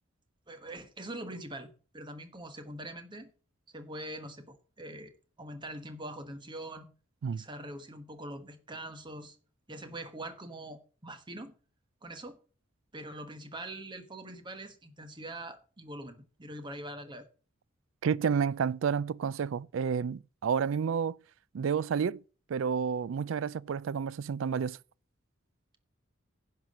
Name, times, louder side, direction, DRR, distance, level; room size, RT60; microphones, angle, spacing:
voice 1, 0.5-3.3 3.7-5.1 5.4-6.9 7.3-9.4 9.7-11.5 12.0-12.4 12.9-17.3, right 1 dB, 25° right, 1.2 m, -43 dB
voice 2, 18.0-21.2 21.5-22.2 22.5-24.8, right 6 dB, 70° right, 0.4 m, -30 dB
10.5 x 5.8 x 6.3 m
head